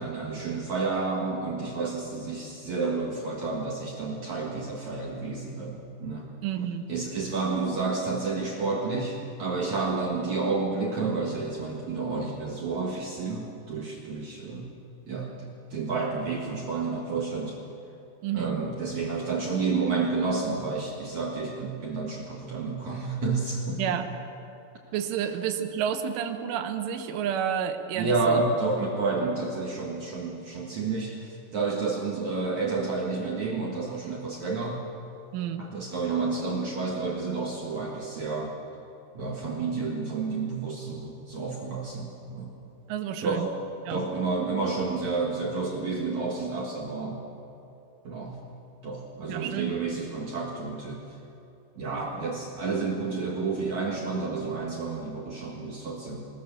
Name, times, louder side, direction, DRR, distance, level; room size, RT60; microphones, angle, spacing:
voice 1, 0.0-6.3 6.9-14.7 15.1-17.6 18.3-24.0 27.9-34.8 35.6-38.5 39.1-42.5 43.2-43.6 43.9-47.2 48.0-48.3 48.8-51.0 51.8-56.3, right 4 dB, 60° right, -2 dB, 2.0 m, -30 dB
voice 2, 6.4-6.9 18.2-18.6 23.8-24.1 24.9-28.4 35.3-35.7 42.9-43.5 43.9-44.0 49.2-49.8, right 9 dB, 80° right, 7 dB, 3.6 m, -30 dB
22.5 x 21.0 x 6.9 m, 2.8 s
omnidirectional pair, 5.7 m